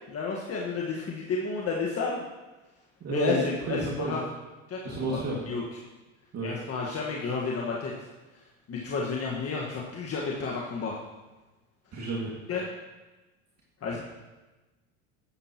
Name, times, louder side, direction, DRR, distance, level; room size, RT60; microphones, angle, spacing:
voice 1, 0.1-2.2 3.1-4.2 4.7-5.6 6.4-7.9 8.7-11.0 12.5-12.6 13.8-14.0, left 4 dB, 40° left, -3 dB, 1.6 m, -31 dB
voice 2, 3.0-4.2 4.8-5.5 6.3-6.6 11.9-12.3 13.9-14.0, right 2 dB, 40° right, -4 dB, 2.2 m, -31 dB
13.0 x 9.8 x 3.0 m, 1.1 s
hypercardioid pair, 85°, 39 cm